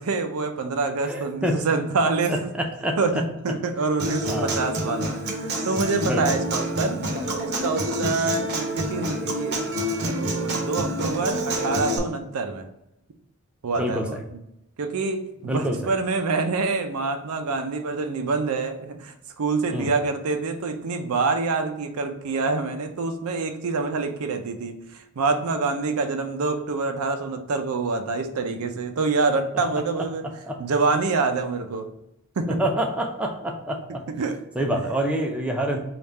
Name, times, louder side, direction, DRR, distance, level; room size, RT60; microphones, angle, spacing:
voice 1, 0.0-2.5 3.0-7.0 7.4-9.6 10.1-12.7 13.6-14.2 14.8-24.8 25.2-30.2 30.6-31.9 32.4-32.6 34.2-34.4, right 3 dB, 80° right, 7 dB, 0.5 m, -26 dB
voice 2, 1.0-1.6 2.3-3.2 4.3-4.6 6.1-6.2 13.8-14.0 15.5-15.8 19.7-19.9 30.0-30.1 30.4-30.6 32.5-34.0 34.6-35.8, right 1 dB, 5° right, 1 dB, 0.4 m, -26 dB
Human voice / Acoustic guitar, 4.0-12.0, right 1 dB, 50° right, 0.7 m, -27 dB
3.5 x 2.4 x 4.1 m, 0.87 s
head